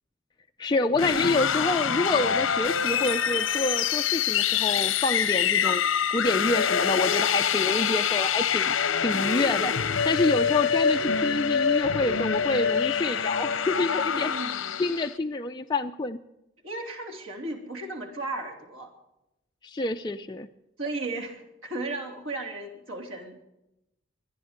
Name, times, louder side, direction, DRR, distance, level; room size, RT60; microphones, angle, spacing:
voice 1, 0.6-8.8 9.0-16.2 19.6-20.5, left 2 dB, 20° left, 4 dB, 0.4 m, -27 dB
sound 1, 0.9-15.1, left 7 dB, 75° left, 0.8 m, -25 dB
voice 2, 14.1-14.8 16.6-18.9 20.8-23.4, right 2 dB, 85° right, 2 dB, 3.3 m, -35 dB
24.5 x 10.5 x 5.1 m, 0.88 s
head